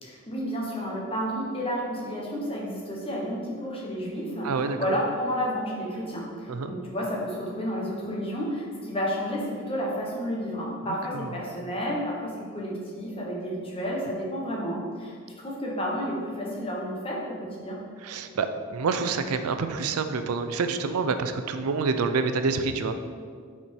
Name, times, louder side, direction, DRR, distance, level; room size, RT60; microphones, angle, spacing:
voice 1, 0.0-17.8, equal, 25° left, -3 dB, 1.2 m, -31 dB
voice 2, 4.4-4.8 6.5-6.7 11.1-11.3 18.0-23.1, right 4 dB, 90° right, 8 dB, 0.4 m, -27 dB
5.8 x 4.3 x 4.6 m, 2.1 s
head